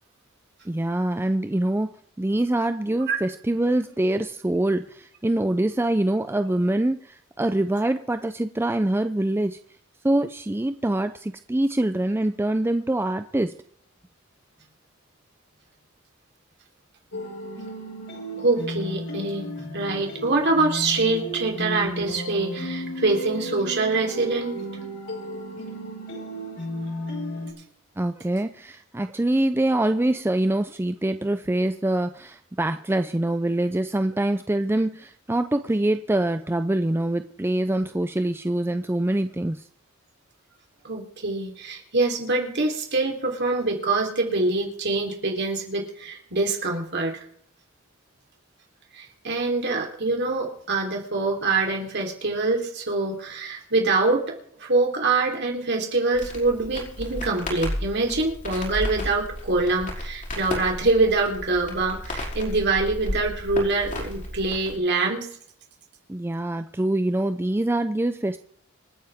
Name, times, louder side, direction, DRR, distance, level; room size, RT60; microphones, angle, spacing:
voice 1, 0.7-9.6 10.0-13.6 28.0-39.6 66.1-68.4, right 1 dB, 10° right, 9 dB, 0.5 m, -24 dB
sound 1, 17.1-27.5, equal, 60° left, 5.1 m, -34 dB
voice 2, 18.4-24.6 40.8-47.2 48.9-54.2 54.6-65.3, right 3 dB, 55° right, 1 dB, 3.6 m, -24 dB
Crackle, 56.1-64.8, left 1 dB, 40° left, 5.3 m, -33 dB
27.0 x 9.2 x 3.6 m, 0.66 s
head